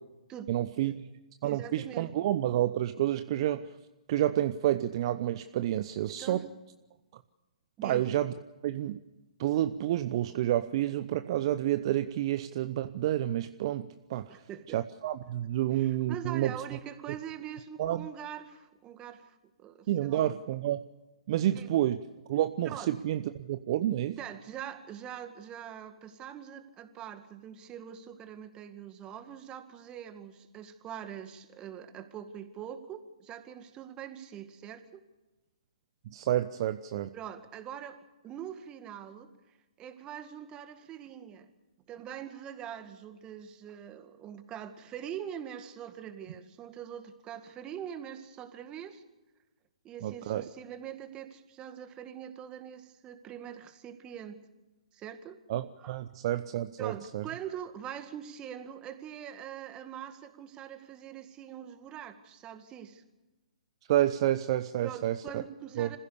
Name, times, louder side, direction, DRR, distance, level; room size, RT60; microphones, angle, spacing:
voice 1, 0.5-1.0 1.4-3.7 4.1-6.5 7.8-8.3 8.6-9.0 9.4-14.4 14.7-16.5 17.8-18.1 19.9-20.8 21.3-22.0 22.3-24.2 36.1-37.1 50.0-50.4 55.5-57.2 63.9-65.4 65.8-66.0, right 13 dB, 45° right, 11 dB, 0.8 m, -29 dB
voice 2, 1.4-2.1 6.1-6.5 7.8-8.0 14.3-14.8 15.7-20.3 21.5-21.7 22.7-22.9 24.2-35.0 37.1-39.3 39.8-41.5 41.9-49.0 49.8-54.4 54.9-55.4 55.8-56.0 56.8-63.0 64.8-66.0, right 9 dB, 20° right, 9 dB, 2.0 m, -43 dB
26.5 x 15.5 x 6.9 m, 1.1 s
hypercardioid pair, 130°, 4 cm